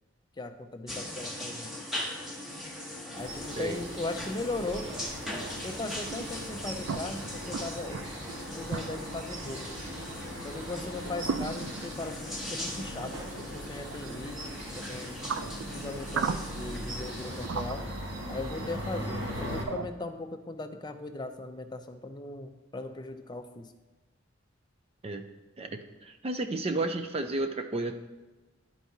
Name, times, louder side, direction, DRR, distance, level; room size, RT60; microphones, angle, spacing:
voice 1, 0.4-1.7 3.1-4.9 5.6-8.0 8.6-9.8 10.4-15.2 15.7-17.9 18.3-23.7, left 2 dB, 20° left, 7 dB, 0.5 m, -38 dB
sound 1, 0.9-17.5, left 1 dB, ahead, 1.0 m, -40 dB
sound 2, 3.1-19.6, equal, 75° right, 1.5 m, -40 dB
sound 3, 6.1-19.9, right 5 dB, 90° right, 0.4 m, -39 dB
voice 2, 25.6-27.9, right 2 dB, 30° right, 6 dB, 0.4 m, -32 dB
11.5 x 4.6 x 2.7 m, 1.2 s
head